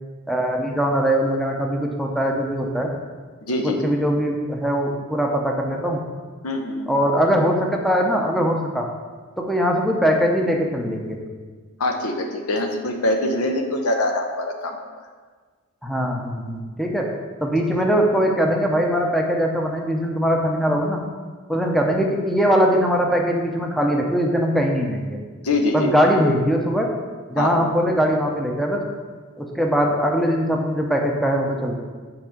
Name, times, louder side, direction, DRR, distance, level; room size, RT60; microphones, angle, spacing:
voice 1, 0.3-2.9 3.6-6.0 6.9-8.9 9.4-11.2 15.8-17.1 17.4-21.0 21.5-25.2 25.7-26.9 27.3-28.8 29.4-31.8, equal, ahead, 0 dB, 0.7 m, -21 dB
voice 2, 3.4-3.9 6.4-6.9 11.8-14.8 17.7-17.8 25.4-26.0 27.4-27.7, left 1 dB, 80° left, 4 dB, 0.9 m, -24 dB
5.9 x 4.8 x 6.6 m, 1.5 s
head